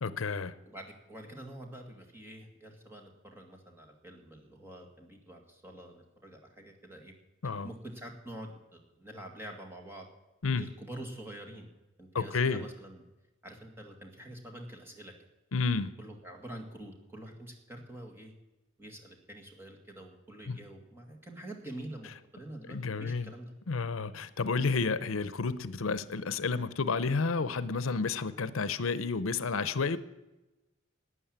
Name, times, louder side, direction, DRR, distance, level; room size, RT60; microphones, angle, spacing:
voice 1, 0.0-0.5 7.4-7.7 10.4-10.6 12.1-12.6 15.5-15.9 20.5-20.6 22.7-23.3 23.7-30.0, left 4 dB, 80° left, 15 dB, 0.7 m, -31 dB
voice 2, 0.7-7.1 7.6-10.1 10.5-11.7 12.0-13.0 13.4-15.1 16.0-18.3 18.8-23.5, right 1 dB, 10° right, 2 dB, 2.1 m, -46 dB
12.5 x 9.5 x 8.9 m, 1.0 s
head